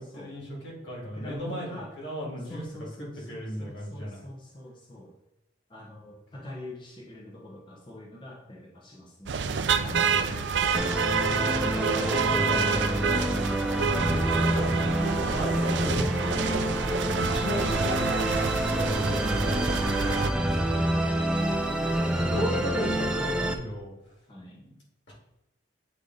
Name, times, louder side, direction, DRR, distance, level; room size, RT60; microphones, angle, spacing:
voice 1, 0.0-2.6 3.3-4.3 10.2-10.4 11.6-14.8 15.2-20.7 21.7-23.9 24.5-24.6 25.1-25.2, equal, 75° left, -3 dB, 2.3 m, -36 dB
voice 2, 1.1-1.9 2.4-5.1 5.7-9.4 9.8-10.9 13.9-14.9 24.3-24.6, equal, 25° left, -3 dB, 0.9 m, -43 dB
sound 1, 9.3-20.3, right 5 dB, 70° right, 0.4 m, -28 dB
Musical instrument, 10.7-23.5, right 1 dB, 5° right, 0.4 m, -27 dB
8.2 x 3.4 x 3.9 m, 0.88 s
head